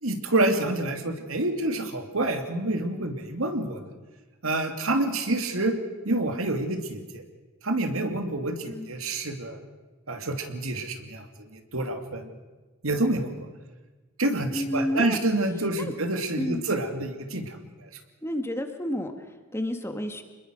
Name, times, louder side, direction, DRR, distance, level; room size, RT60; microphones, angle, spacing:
voice 1, 0.0-3.8 4.4-5.8 6.0-7.2 7.6-9.6 10.1-12.3 12.8-13.5 14.2-17.9, right 2 dB, 75° right, 6 dB, 2.5 m, -28 dB
voice 2, 14.5-15.2 15.8-15.9 16.4-16.6 18.2-20.2, equal, 10° left, 6 dB, 1.7 m, -31 dB
27.0 x 21.0 x 6.4 m, 1.2 s
head